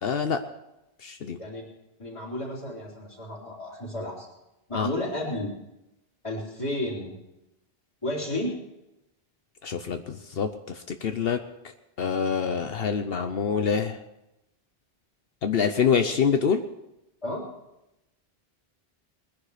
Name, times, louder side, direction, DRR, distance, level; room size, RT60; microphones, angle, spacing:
voice 1, 0.0-0.4 1.0-1.4 4.7-4.9 9.6-10.5 11.0-11.4 12.0-14.0 15.4-16.6, left 6 dB, 70° left, 7 dB, 1.0 m, -25 dB
voice 2, 2.0-4.3 4.7-5.5 6.2-7.1 8.0-8.6 17.2-17.5, left 1 dB, 30° left, -7 dB, 3.8 m, -32 dB
21.0 x 10.5 x 5.0 m, 0.91 s
omnidirectional pair, 1.0 m